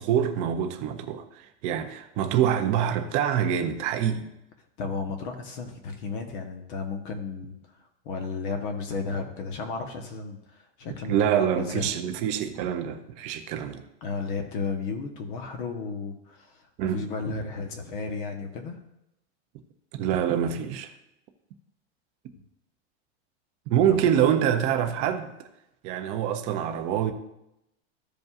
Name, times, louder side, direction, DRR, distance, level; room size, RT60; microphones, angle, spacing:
voice 1, 0.0-4.3 11.1-13.8 16.8-17.0 19.9-20.9 23.7-25.3 25.8-27.1, right 9 dB, 20° right, 0.3 m, -25 dB
voice 2, 4.8-11.9 14.0-18.8 23.9-24.0, left 4 dB, 50° left, 1.1 m, -34 dB
14.0 x 5.2 x 2.4 m
supercardioid pair, 165°, 34 cm